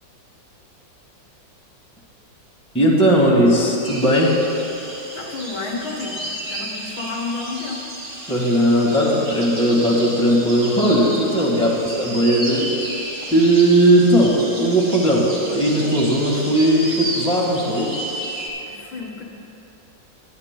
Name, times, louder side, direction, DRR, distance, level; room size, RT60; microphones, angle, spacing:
voice 1, 2.7-4.4 8.3-12.8 13.3-17.9, right 1 dB, 5° left, -4 dB, 1.5 m, -17 dB
sound 1, 3.8-18.5, right 1 dB, 40° right, 2.1 m, -32 dB
voice 2, 5.1-7.9 11.5-11.8 18.7-19.2, left 3 dB, 75° left, -1 dB, 2.0 m, -31 dB
22.5 x 10.5 x 2.2 m, 2.9 s
omnidirectional pair, 2.1 m